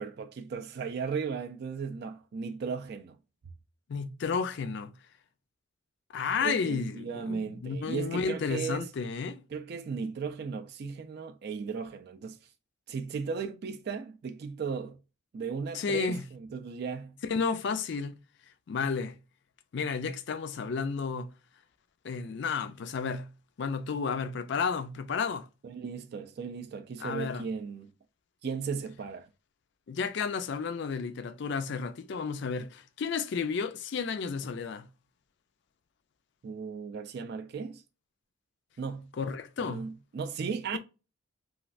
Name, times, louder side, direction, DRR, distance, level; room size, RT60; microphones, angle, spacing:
voice 1, 0.0-3.2 6.4-8.9 9.5-12.4 12.9-15.0 15.3-17.2 25.6-27.9 28.4-29.3 36.4-37.8 38.8-39.1 39.6-40.8, right 5 dB, 50° right, 0.3 m, -36 dB
voice 2, 3.9-4.9 6.1-9.4 15.7-16.2 17.3-18.2 18.7-19.2 19.7-21.3 22.0-23.3 23.6-25.5 27.0-27.4 29.9-34.9 39.2-39.9, left 5 dB, 55° left, 0.3 m, -32 dB
3.1 x 2.4 x 2.4 m
head